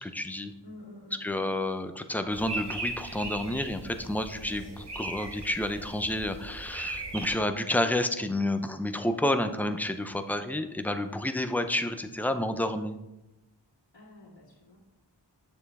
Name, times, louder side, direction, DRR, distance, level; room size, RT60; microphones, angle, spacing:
voice 1, 0.0-0.5 1.2-13.0, left 1 dB, 5° left, 8 dB, 0.6 m, -30 dB
voice 2, 0.6-1.5 4.4-4.7 10.2-10.7 13.9-14.8, left 1 dB, 80° left, -8 dB, 2.2 m, -49 dB
sound 1, 2.3-7.4, right 2 dB, 65° right, 1.4 m, -38 dB
8.9 x 6.9 x 3.5 m, 0.96 s
wide cardioid pair, 55°, 44 cm